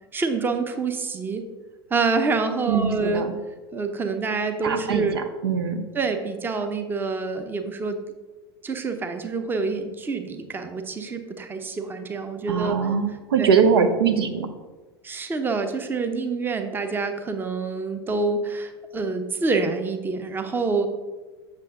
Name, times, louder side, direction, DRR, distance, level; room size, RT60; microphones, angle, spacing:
voice 1, 0.1-1.4 1.9-3.3 3.7-5.2 5.9-8.0 8.6-12.8 13.4-13.5 15.0-20.9, right 4 dB, 15° right, 6 dB, 0.7 m, -27 dB
voice 2, 2.7-3.4 4.6-5.1 5.4-5.8 12.5-14.5, right 6 dB, 70° right, 7 dB, 0.7 m, -22 dB
7.6 x 6.3 x 3.7 m, 1.3 s
figure-of-eight pair, 85°, 14 cm